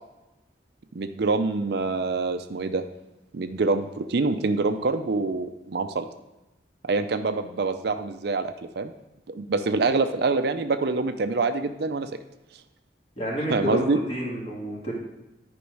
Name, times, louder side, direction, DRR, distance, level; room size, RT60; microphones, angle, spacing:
voice 1, 0.9-2.8 3.3-6.0 6.9-8.9 9.3-12.1 13.5-14.0, right 3 dB, 60° right, 9 dB, 0.5 m, -25 dB
voice 2, 13.2-14.9, equal, 35° left, -2 dB, 2.0 m, -29 dB
10.0 x 5.3 x 4.7 m, 1.0 s
head